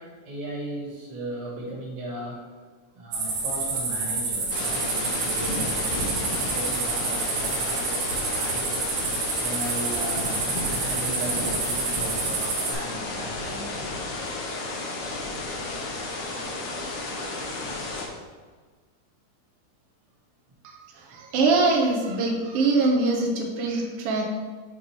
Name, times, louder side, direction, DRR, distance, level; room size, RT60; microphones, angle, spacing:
voice 1, 0.0-2.5 2.9-8.7 9.3-13.8 15.7-15.9, right 1 dB, 50° right, -3 dB, 1.9 m, -37 dB
sound 1, 3.1-12.7, right 3 dB, 70° right, 2.7 m, -28 dB
sound 2, 4.5-18.1, left 2 dB, 70° left, 1.5 m, -32 dB
voice 2, 20.6-24.2, right 3 dB, 90° right, 0 dB, 1.2 m, -23 dB
7.1 x 3.8 x 4.6 m, 1.5 s
omnidirectional pair, 3.7 m